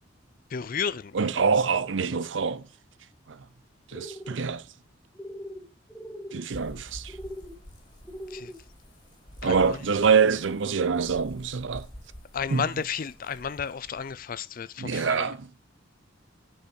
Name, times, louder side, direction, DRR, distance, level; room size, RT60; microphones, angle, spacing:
voice 1, 0.5-1.1 8.3-8.5 9.4-9.8 12.3-15.3, left 6 dB, 45° left, 0.5 m, -32 dB
voice 2, 1.1-2.6 3.3-3.4 3.9-4.6 6.3-7.2 9.4-11.9 12.5-12.6 14.8-15.5, right 5 dB, 75° right, 0.6 m, -25 dB
sound 1, 3.9-4.4 5.1-5.6 5.9-6.4 7.1-7.5 8.0-8.6, equal, 5° left, 1.1 m, -40 dB
sound 2, 6.5-14.1, equal, 25° left, 3.1 m, -47 dB
8.0 x 5.6 x 6.3 m
head